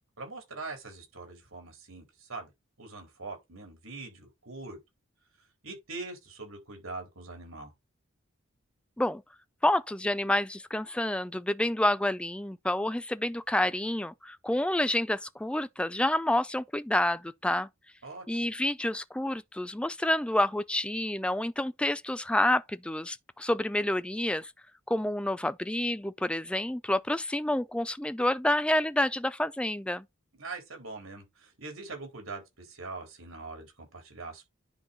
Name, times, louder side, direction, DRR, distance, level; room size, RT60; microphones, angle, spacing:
voice 1, 0.2-2.5 2.8-4.8 5.6-7.7 18.0-18.5 30.4-34.4, right 3 dB, 85° right, 4.2 m, -42 dB
voice 2, 9.6-17.7 18.3-24.5 24.9-30.0, left 1 dB, 5° left, 0.4 m, -28 dB
10.0 x 4.2 x 4.1 m
head